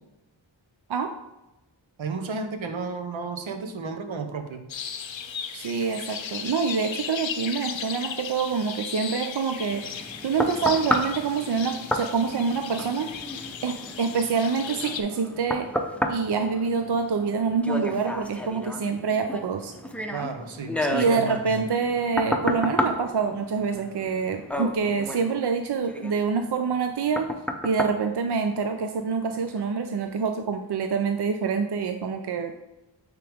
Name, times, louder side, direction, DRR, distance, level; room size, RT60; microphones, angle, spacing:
voice 1, 2.0-4.7 20.1-21.7, right 4 dB, 75° right, 7 dB, 0.9 m, -33 dB
sound 1, 4.7-15.0, left 7 dB, 70° left, 0.7 m, -36 dB
voice 2, 5.5-13.1 13.6-15.7 16.1-19.7 20.9-27.3 27.6-32.5, right 5 dB, 55° right, 6 dB, 0.6 m, -26 dB
sound 2, 9.7-29.0 29.5-29.6, left 1 dB, 5° left, 0.6 m, -32 dB
8.9 x 3.7 x 3.5 m, 0.96 s
wide cardioid pair, 60°, 47 cm